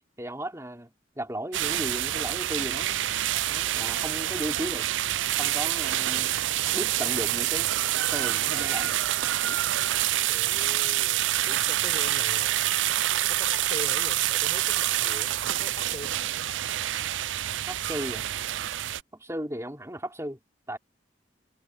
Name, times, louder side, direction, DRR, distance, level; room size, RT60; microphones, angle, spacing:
voice 1, 0.2-3.0 3.5-4.9 5.4-6.3 6.7-7.7 8.1-9.0 9.4-9.6 17.7-18.2 19.2-20.4 20.7-20.8, right 1 dB, 15° right, 4.1 m, -35 dB
sound 1, 1.5-19.0, right 13 dB, 80° right, 0.4 m, -27 dB
voice 2, 10.2-12.7 13.3-16.3, left 1 dB, 30° left, 4.9 m, -42 dB
head